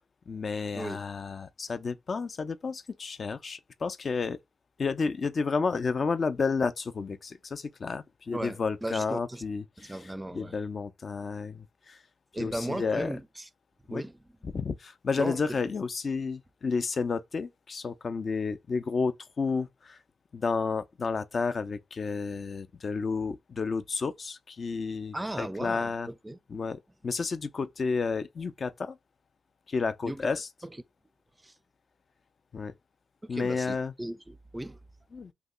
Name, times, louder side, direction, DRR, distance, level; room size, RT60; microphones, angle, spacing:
voice 1, 0.3-4.4 4.8-9.9 10.3-12.0 12.4-13.1 13.9-14.0 14.5-20.0 20.3-26.1 26.5-29.0 29.7-30.5 32.5-32.7 33.3-33.9 35.1-35.3, left 4 dB, 50° left, 0.5 m, -31 dB
voice 2, 8.3-9.4 9.8-10.6 12.3-13.5 13.9-14.2 15.2-15.6 25.1-26.4 30.0-30.3 30.6-30.8 31.4-31.5 33.2-34.8, right 1 dB, 15° right, 0.4 m, -37 dB
2.8 x 2.3 x 3.7 m
supercardioid pair, 55°, 0 cm